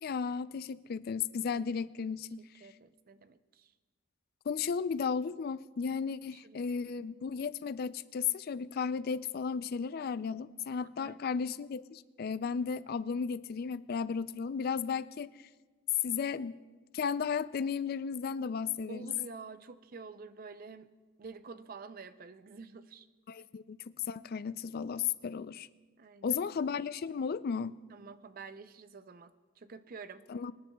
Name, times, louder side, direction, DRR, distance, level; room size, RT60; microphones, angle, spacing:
voice 1, 0.0-2.4 4.5-15.3 16.0-16.6 16.9-19.1 23.3-23.8 24.1-25.7 26.2-27.7 30.3-30.5, left 6 dB, 45° left, 16 dB, 0.3 m, -34 dB
voice 2, 2.6-3.7 6.3-6.6 10.8-11.4 18.9-20.9 21.2-23.1 26.0-26.4 27.9-30.2, right 4 dB, 45° right, 12 dB, 0.5 m, -49 dB
25.0 x 10.0 x 2.3 m, 1.3 s
head